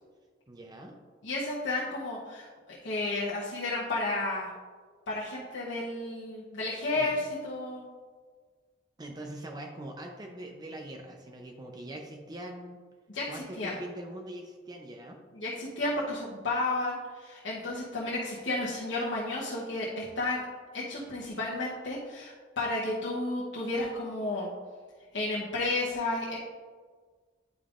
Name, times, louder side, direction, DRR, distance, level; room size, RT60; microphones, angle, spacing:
voice 1, 0.5-1.0 6.9-7.3 9.0-12.8 13.3-15.2, right 1 dB, 20° right, 2 dB, 0.5 m, -42 dB
voice 2, 1.2-4.5 5.1-7.8 13.1-13.7 15.3-20.4 20.7-24.5 25.1-26.4, left 2 dB, 80° left, -6 dB, 0.9 m, -32 dB
9.3 x 5.2 x 2.5 m, 1.5 s
head